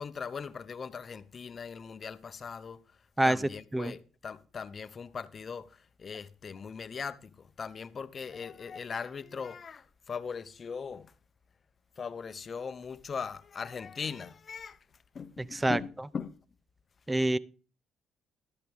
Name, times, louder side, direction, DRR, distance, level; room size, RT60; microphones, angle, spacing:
voice 1, 0.0-2.8 3.2-11.1 12.0-14.8 15.1-16.4, left 6 dB, 45° left, 0.8 m, -40 dB
voice 2, 3.2-3.9 15.4-15.8 17.1-17.4, right 1 dB, 15° right, 0.6 m, -27 dB
12.5 x 11.0 x 3.6 m
supercardioid pair, 75°, 0 cm